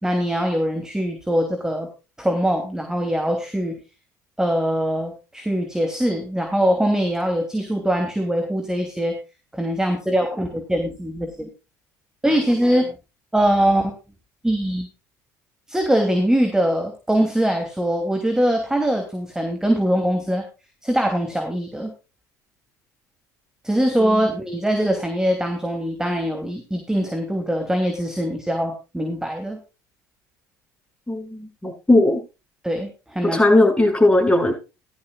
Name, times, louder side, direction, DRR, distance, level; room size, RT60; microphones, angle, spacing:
voice 1, 0.0-1.9 2.2-3.8 4.4-9.2 9.5-11.5 12.2-13.0 13.3-13.9 14.4-14.9 15.7-20.4 20.8-21.9 23.6-29.6 32.6-33.4, equal, 5° right, 4 dB, 2.9 m, -22 dB
voice 2, 31.1-32.2 33.3-34.5, left 2 dB, 10° left, 2 dB, 6.2 m, -17 dB
15.5 x 12.5 x 2.4 m, 0.29 s
hypercardioid pair, 60°, 9 cm